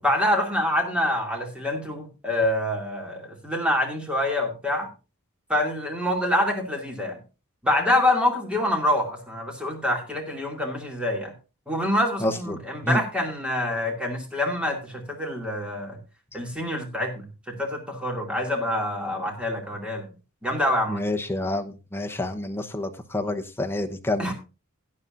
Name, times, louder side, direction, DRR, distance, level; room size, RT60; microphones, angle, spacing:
voice 1, 0.0-4.9 5.5-7.2 7.6-11.3 11.7-16.0 16.3-20.1 20.4-21.0 24.2-24.3, left 1 dB, 5° right, 2 dB, 2.5 m, -26 dB
voice 2, 12.2-12.6 12.8-13.0 20.9-24.3, left 1 dB, 10° left, 4 dB, 0.9 m, -28 dB
16.5 x 9.9 x 2.6 m, 0.31 s
head